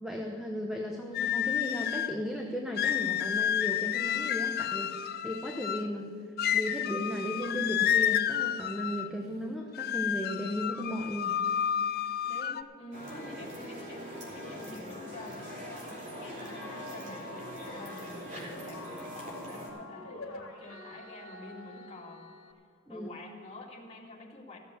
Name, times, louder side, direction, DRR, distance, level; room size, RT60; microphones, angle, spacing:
voice 1, 0.0-6.1 6.5-11.4 22.9-23.1, equal, 5° right, 0 dB, 0.9 m, -35 dB
sound 1, 1.1-2.2 2.8-5.9 6.4-9.1 9.8-12.6, left 10 dB, 50° left, 0.4 m, -30 dB
voice 2, 12.2-15.9 16.2-22.3 22.9-24.6, left 1 dB, 30° left, -3 dB, 2.3 m, -48 dB
sound 2, 12.9-19.7, equal, 35° right, 3.5 m, -42 dB
sound 3, 16.5-22.5, left 2 dB, 75° left, 1.6 m, -48 dB
15.0 x 7.6 x 7.7 m, 2.4 s
head